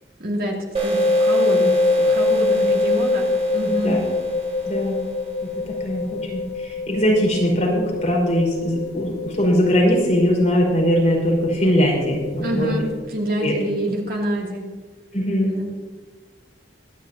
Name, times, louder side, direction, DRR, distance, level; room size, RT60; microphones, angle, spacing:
voice 1, 0.2-4.1 12.4-14.6 15.5-15.7, equal, 55° right, -1 dB, 2.6 m, -27 dB
sound 1, 0.7-6.1, left 2 dB, 35° right, 2.2 m, -21 dB
sound 2, 1.7-13.0, left 5 dB, 60° left, 2.8 m, -32 dB
voice 2, 4.6-5.0 5.4-12.8 13.4-13.6 15.1-15.7, equal, 40° left, -3 dB, 4.8 m, -21 dB
23.0 x 11.0 x 2.9 m, 1.3 s
head